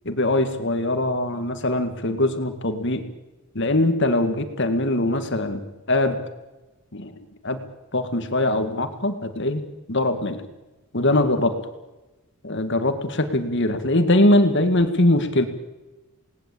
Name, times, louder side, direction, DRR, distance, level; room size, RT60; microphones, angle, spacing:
voice 1, 0.1-3.1 3.5-5.6 5.9-6.2 6.9-7.6 7.9-10.4 10.9-11.6 12.4-15.4, left 1 dB, 55° left, 8 dB, 2.1 m, -22 dB
29.0 x 19.5 x 8.6 m, 1.1 s
head